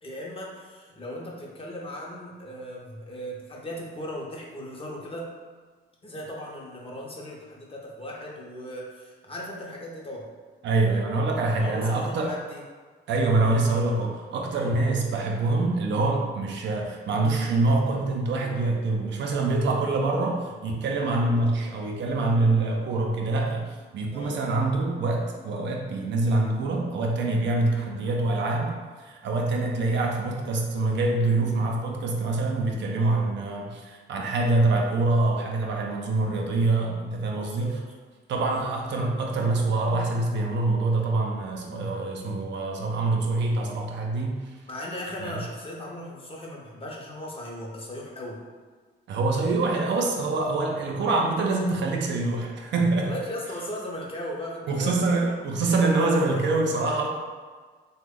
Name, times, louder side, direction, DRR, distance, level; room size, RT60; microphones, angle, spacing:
voice 1, 0.0-5.3 6.0-10.3 11.6-12.6 13.3-13.6 14.6-14.7 20.9-21.3 24.1-24.5 27.6-27.8 29.9-30.0 33.0-33.2 34.7-34.8 37.4-37.8 38.4-38.7 44.7-48.4 53.0-55.4 56.0-56.4, equal, 30° left, -2 dB, 0.7 m, -37 dB
voice 2, 10.6-12.4 13.1-37.8 38.3-44.5 45.2-45.4 49.1-53.1 54.7-57.1, right 2 dB, 65° right, 1 dB, 0.5 m, -25 dB
3.0 x 2.2 x 3.6 m, 1.5 s
cardioid pair, 90°, 20 cm